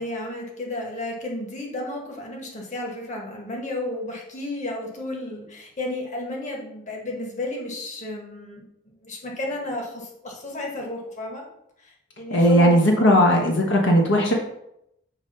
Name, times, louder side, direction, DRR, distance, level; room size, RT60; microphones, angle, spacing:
voice 1, 0.0-8.6 9.0-11.4 11.8-13.1, left 1 dB, 40° left, -1 dB, 1.4 m, -32 dB
voice 2, 12.3-14.3, equal, 70° left, 0 dB, 1.1 m, -17 dB
7.2 x 3.2 x 5.6 m, 0.80 s
head